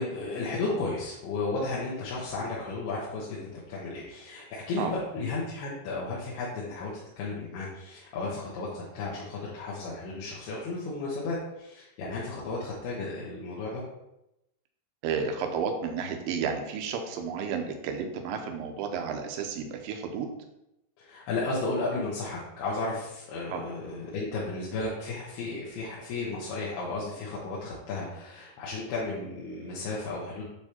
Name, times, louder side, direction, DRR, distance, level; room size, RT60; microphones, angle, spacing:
voice 1, 0.0-13.8 21.0-30.5, left 3 dB, 85° left, -6 dB, 3.2 m, -34 dB
voice 2, 15.0-20.3 23.5-23.6, right 6 dB, 75° right, 4 dB, 2.3 m, -32 dB
8.9 x 3.4 x 4.4 m, 0.88 s
omnidirectional pair, 4.4 m